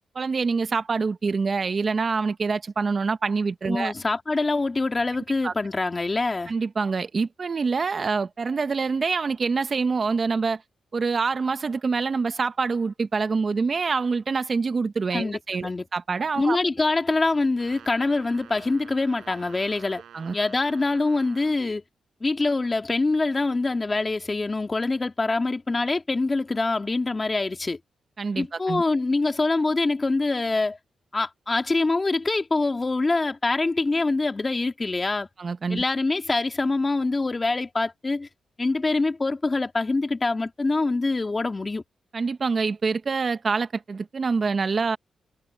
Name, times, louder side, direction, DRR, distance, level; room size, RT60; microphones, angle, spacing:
voice 1, 0.1-3.9 5.4-5.5 6.5-10.6 10.9-16.6 20.1-20.3 28.2-28.8 35.4-35.8 42.1-45.0, right 4 dB, 45° right, 1.0 m, -26 dB
voice 2, 3.7-6.5 15.1-15.8 16.4-20.0 20.3-21.8 22.2-27.8 28.3-30.8 31.1-35.3 35.7-38.3 38.6-41.8, left 3 dB, 30° left, 2.4 m, -25 dB
Brass instrument, 17.5-21.6, right 9 dB, 80° right, 4.9 m, -49 dB
cardioid pair, 85°, 0 cm